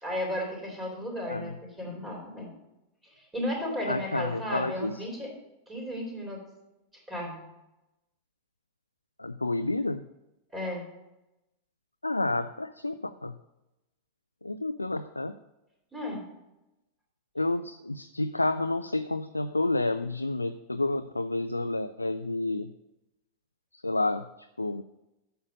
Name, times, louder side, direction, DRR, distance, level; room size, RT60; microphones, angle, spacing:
voice 1, 0.0-2.5 3.1-5.3 5.7-6.4 7.1-7.4 10.5-10.9 15.9-16.2, left 1 dB, 15° right, -1 dB, 3.8 m, -34 dB
voice 2, 3.9-4.9 9.2-10.0 12.0-13.4 14.4-15.3 17.4-22.7 23.8-24.2 24.6-24.8, left 2 dB, 85° left, 10 dB, 0.3 m, -30 dB
8.9 x 6.6 x 5.2 m, 0.94 s
figure-of-eight pair, 90°, 0 cm